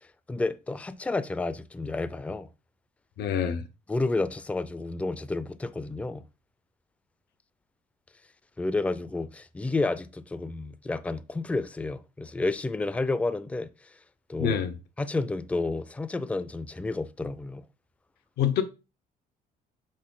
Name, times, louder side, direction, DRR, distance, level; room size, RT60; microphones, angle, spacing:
voice 1, 0.3-2.5 3.9-6.2 8.6-13.7 14.3-14.6 15.0-17.6, left 3 dB, 10° left, 0.4 m, -30 dB
voice 2, 3.2-3.6 14.4-14.7 18.4-18.6, left 8 dB, 75° left, 0.8 m, -25 dB
7.6 x 3.8 x 3.7 m
cardioid pair, 110°, 17 cm